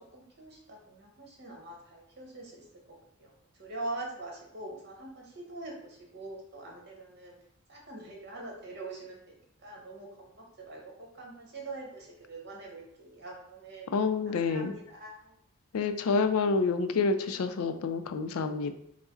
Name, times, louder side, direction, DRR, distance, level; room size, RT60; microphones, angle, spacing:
voice 1, 0.0-2.7 3.2-3.3 3.6-7.4 7.7-13.9 14.3-15.4, right 2 dB, 50° right, -1 dB, 1.0 m, -43 dB
voice 2, 13.9-14.7 15.7-18.7, left 4 dB, 90° left, 9 dB, 0.4 m, -28 dB
4.8 x 2.0 x 3.7 m, 0.71 s
head